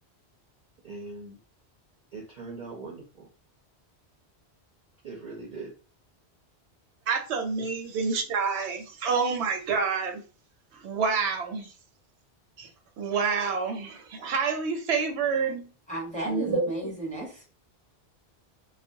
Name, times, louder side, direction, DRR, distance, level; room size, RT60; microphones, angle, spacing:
voice 1, 0.8-1.4 2.1-3.3 5.0-5.7 7.6-7.7, right 3 dB, 55° right, -1 dB, 0.6 m, -40 dB
voice 2, 7.1-10.2 10.8-11.7 12.6-12.7 13.0-15.7 16.3-16.7, right 5 dB, 85° right, 4 dB, 0.9 m, -28 dB
voice 3, 15.9-17.5, right 1 dB, 5° left, -4 dB, 0.9 m, -34 dB
2.3 x 2.1 x 2.6 m, 0.36 s
omnidirectional pair, 1.1 m